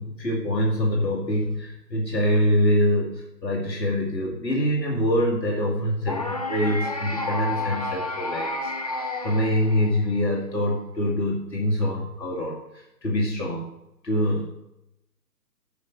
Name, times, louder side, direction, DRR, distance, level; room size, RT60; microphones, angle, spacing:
voice 1, 0.0-12.6 13.0-13.7 14.0-14.5, equal, 80° left, -3 dB, 2.5 m, -25 dB
sound 1, 6.1-10.2, left 2 dB, 25° left, 0.6 m, -30 dB
9.7 x 5.1 x 6.6 m, 0.86 s
figure-of-eight pair, 145°, 49 cm